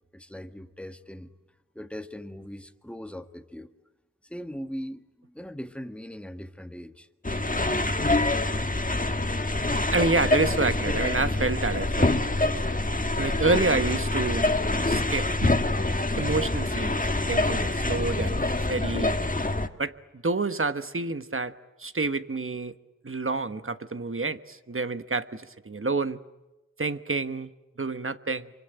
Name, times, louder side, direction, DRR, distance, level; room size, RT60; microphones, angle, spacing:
voice 1, 0.1-1.3 1.7-3.7 4.2-7.1, equal, 5° left, 8 dB, 1.7 m, -40 dB
sound 1, 7.2-19.7, left 2 dB, 25° left, 1.6 m, -26 dB
voice 2, 9.9-12.2 13.2-14.5 14.9-15.6 16.2-19.2 19.8-19.9 20.2-21.5 21.8-22.7 23.0-26.2 26.8-27.5 27.8-28.5, right 3 dB, 45° right, 11 dB, 1.3 m, -28 dB
26.5 x 24.5 x 9.0 m, 1.0 s
wide cardioid pair, 55°, 30 cm